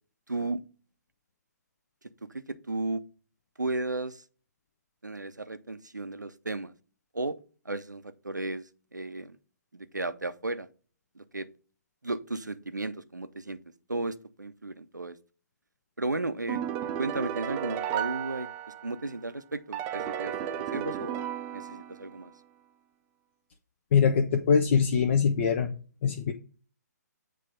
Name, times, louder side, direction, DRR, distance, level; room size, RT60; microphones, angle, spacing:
voice 1, 0.3-0.6 2.2-3.0 3.6-4.2 5.0-6.7 7.1-7.4 7.6-9.4 9.7-10.7 11.2-11.5 12.0-13.6 13.9-15.2 16.0-16.6 17.0-18.5 18.8-22.3, right 2 dB, 90° right, 0.6 m, -34 dB
sound 1, 16.5-19.1 19.7-22.2, right 10 dB, 20° right, 0.5 m, -34 dB
voice 2, 23.9-25.7 26.0-26.3, left 6 dB, 40° left, 0.6 m, -23 dB
7.7 x 3.3 x 4.9 m
figure-of-eight pair, 130°, 9 cm